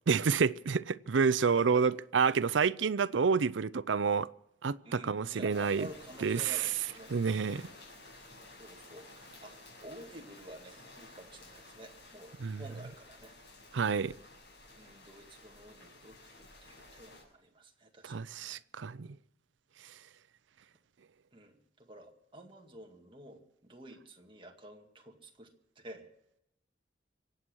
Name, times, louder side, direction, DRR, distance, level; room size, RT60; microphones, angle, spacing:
voice 1, 0.1-4.3 4.6-5.9 6.2-6.7 7.1-7.6 12.4-12.6 13.7-14.2 18.0-19.1, right 5 dB, 85° right, 0.5 m, -29 dB
voice 2, 4.8-7.1 7.5-7.8 8.6-9.5 9.8-13.3 14.8-18.1 18.4-18.6 21.3-25.5 25.8-26.1, right 1 dB, 30° right, 2.1 m, -50 dB
sound 1, 5.5-17.2, left 2 dB, 70° left, 6.3 m, -54 dB
24.5 x 8.6 x 6.2 m
head